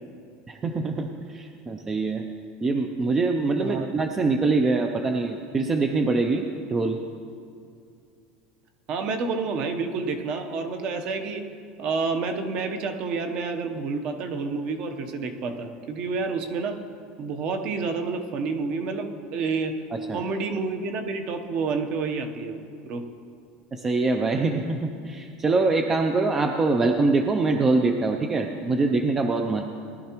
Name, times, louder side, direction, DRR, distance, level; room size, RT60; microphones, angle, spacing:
voice 1, 0.5-2.2 2.6-6.5 6.7-7.0 19.9-20.2 23.7-29.6, right 3 dB, 15° right, 5 dB, 0.4 m, -24 dB
voice 2, 8.9-11.4 11.8-16.8 17.2-19.8 20.1-23.0, right 4 dB, 40° right, 6 dB, 0.8 m, -29 dB
18.5 x 12.0 x 3.0 m, 2.4 s
cardioid pair, 175°, 3 cm